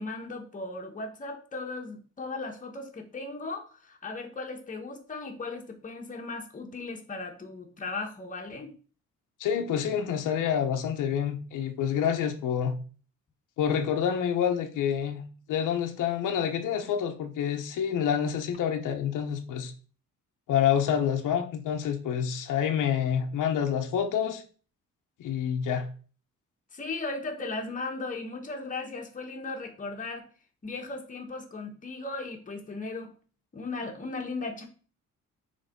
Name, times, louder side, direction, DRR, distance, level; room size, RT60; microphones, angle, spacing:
voice 1, 0.0-8.7 26.7-30.3 30.6-33.1 33.5-34.7, left 3 dB, 25° left, 2 dB, 1.3 m, -37 dB
voice 2, 9.4-12.8 13.6-15.2 15.5-19.7 20.5-24.4 25.2-25.9, left 8 dB, 90° left, 5 dB, 1.0 m, -27 dB
6.5 x 3.5 x 5.2 m, 0.39 s
cardioid pair, 130°, 30 cm